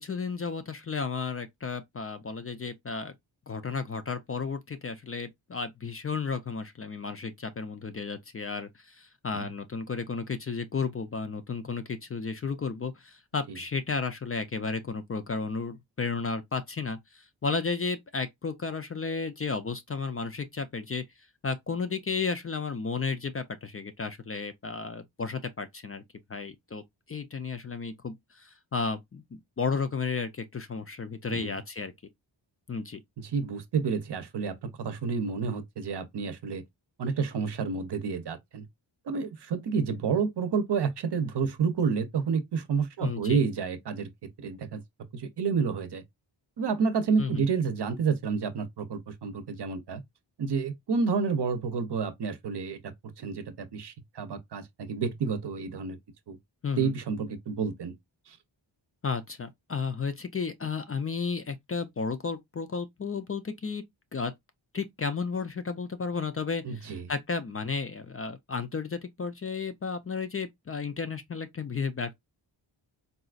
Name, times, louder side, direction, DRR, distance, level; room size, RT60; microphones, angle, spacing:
voice 1, 0.0-3.1 3.5-21.0 21.4-26.0 26.3-26.8 27.1-29.2 29.6-31.9 32.7-33.0 43.0-43.4 47.2-47.5 56.6-56.9 59.0-63.8 64.1-64.3 64.7-72.1, left 5 dB, 30° left, 0.4 m, -33 dB
voice 2, 33.2-36.6 37.0-38.7 39.1-44.1 44.4-44.8 45.1-46.0 46.6-50.0 50.4-52.8 53.2-56.0 56.3-56.4 56.7-57.9 58.3-58.4 66.6-67.1, right 5 dB, 60° right, 0.7 m, -29 dB
4.0 x 2.4 x 2.3 m
wide cardioid pair, 90°, 46 cm